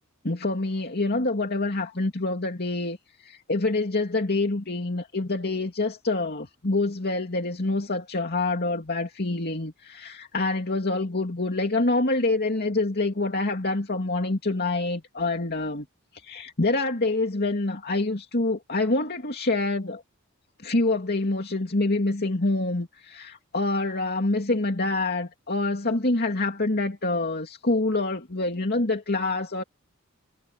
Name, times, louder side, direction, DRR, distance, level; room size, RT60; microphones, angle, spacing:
voice 1, 0.2-3.0 3.2-15.9 16.2-20.0 20.6-29.6, left 2 dB, 50° left, 2.6 m, -26 dB
head